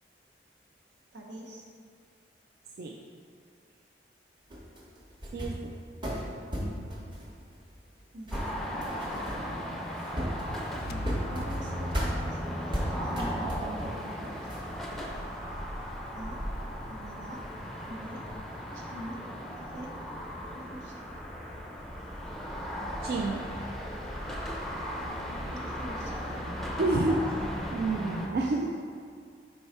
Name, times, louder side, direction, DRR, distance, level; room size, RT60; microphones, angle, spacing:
voice 1, 1.1-1.7 8.1-8.8 10.9-15.2 16.1-16.4 16.9-17.4 17.9-18.2 18.7-19.2 19.7-19.9 20.5-21.0 25.0-26.4 28.3-28.7, right 1 dB, 80° right, -1 dB, 1.1 m, -44 dB
sound 1, 4.5-5.7 6.0-8.0 8.3-9.7 10.0-11.6 11.9-12.2 12.7-14.0 14.2-15.1, equal, 25° right, 0.9 m, -35 dB
sound 2, 8.3-28.3, equal, ahead, 0.5 m, -37 dB
sound 3, 10.3-13.6, left 1 dB, 55° left, 0.3 m, -42 dB
voice 2, 23.0-23.4 26.8-27.3 27.7-28.7, right 2 dB, 55° right, 0 dB, 0.3 m, -28 dB
5.4 x 4.6 x 4.3 m, 2.2 s
head